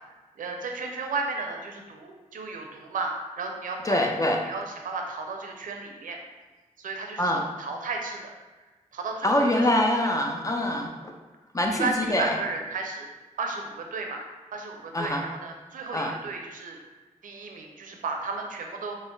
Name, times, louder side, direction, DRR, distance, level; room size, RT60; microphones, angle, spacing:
voice 1, 0.4-4.1 4.5-6.2 6.8-8.4 8.9-9.6 10.0-10.1 10.6-10.9 11.7-13.1 13.4-14.2 14.5-16.8 17.2-19.0, right 3 dB, 85° right, 2 dB, 0.4 m, -34 dB
voice 2, 3.8-4.4 7.2-7.5 9.2-10.9 11.5-12.3 14.9-15.2 15.9-16.1, left 1 dB, 25° left, 2 dB, 0.6 m, -24 dB
3.5 x 2.0 x 3.8 m, 1.2 s
cardioid pair, 45°, 14 cm